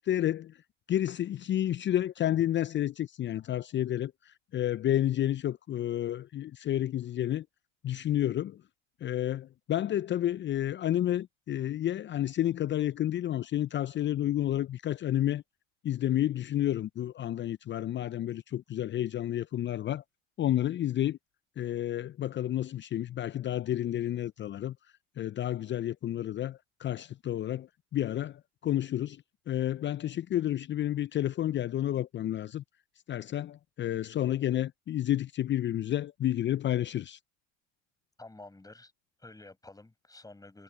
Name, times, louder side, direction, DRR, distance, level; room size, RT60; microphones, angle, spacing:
voice 1, 0.1-0.6 0.9-7.4 7.8-8.6 9.0-15.4 15.8-20.0 20.4-21.2 21.6-24.7 25.2-29.2 29.5-32.6 33.1-37.2, left 12 dB, 30° left, 0.8 m, -30 dB
voice 2, 38.2-38.9 39.2-40.6, left 2 dB, 10° left, 7.9 m, -50 dB
hypercardioid pair, 75°, 36 cm